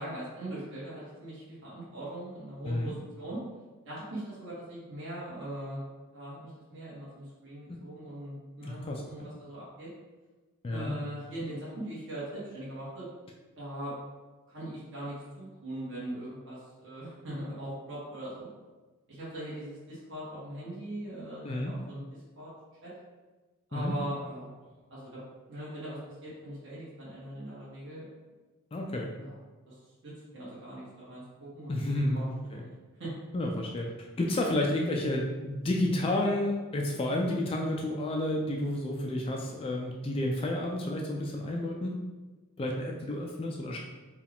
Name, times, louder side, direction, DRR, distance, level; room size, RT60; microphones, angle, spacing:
voice 1, 0.0-3.4 3.8-5.8 6.1-9.9 10.7-13.1 13.6-13.9 14.5-18.5 19.1-22.0 22.3-22.5 22.8-22.9 23.7-24.5 24.9-25.1 25.5-28.1 29.1-29.3 29.7-32.7 33.0-33.1, right 1 dB, 60° right, -9 dB, 1.4 m, -40 dB
voice 2, 8.6-9.3 10.6-10.9 21.4-21.7 23.7-24.0 28.7-29.1 31.7-32.6 33.3-42.0 42.6-43.8, left 1 dB, 25° left, 0 dB, 0.3 m, -31 dB
4.6 x 2.4 x 3.5 m, 1.2 s
head